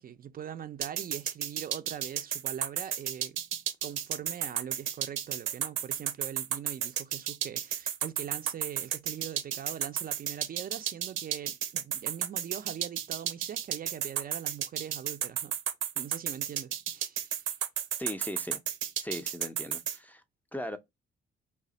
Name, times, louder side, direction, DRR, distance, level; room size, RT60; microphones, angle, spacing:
voice 1, 0.0-3.4 3.8-15.5 16.0-17.5, right 9 dB, 50° right, 0.4 m, -42 dB
sound 1, 0.8-20.0, right 10 dB, 85° right, 0.7 m, -32 dB
voice 2, 18.0-18.6 19.0-20.2 20.5-20.8, equal, 10° left, 0.5 m, -38 dB
3.2 x 2.0 x 3.8 m
cardioid pair, 90°, 20 cm